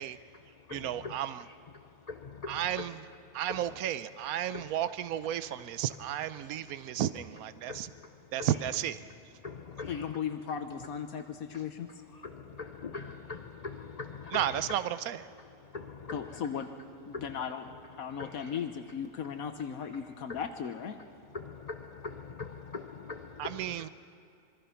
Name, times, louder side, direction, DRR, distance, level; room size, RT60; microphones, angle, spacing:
voice 1, 0.1-3.8 4.2-4.8 5.3-5.9 6.3-7.0 7.6-8.8 9.4-10.2 11.2-16.6 17.1-17.4 18.0-18.7 19.8-20.4 21.0-23.9, left 4 dB, 40° left, 6 dB, 0.6 m, -44 dB
voice 2, 0.7-1.4 2.5-2.9 3.3-7.9 8.3-9.0 14.3-15.2 23.4-23.9, right 11 dB, 85° right, 14 dB, 1.1 m, -33 dB
voice 3, 9.9-11.9 16.1-16.7 17.0-17.6 18.0-21.0, left 7 dB, 80° left, 7 dB, 1.3 m, -36 dB
26.0 x 22.5 x 5.8 m, 2.6 s
omnidirectional pair, 1.5 m